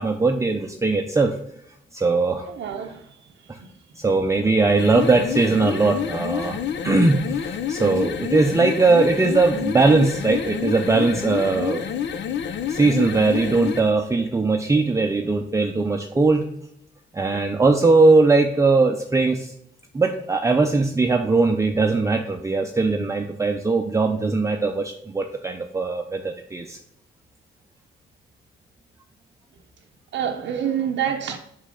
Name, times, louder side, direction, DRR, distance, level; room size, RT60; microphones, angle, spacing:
voice 1, 0.0-1.4 1.9-2.5 4.0-6.6 6.8-11.8 12.7-16.5 17.1-19.5 19.9-26.8, right 3 dB, 15° right, 0.6 m, -20 dB
voice 2, 2.5-3.1 3.6-3.7 30.1-31.4, right 8 dB, 65° right, 0.7 m, -27 dB
sound 1, 4.7-13.9, left 8 dB, 65° left, 0.6 m, -28 dB
5.6 x 5.0 x 3.7 m
cardioid pair, 90°, 20 cm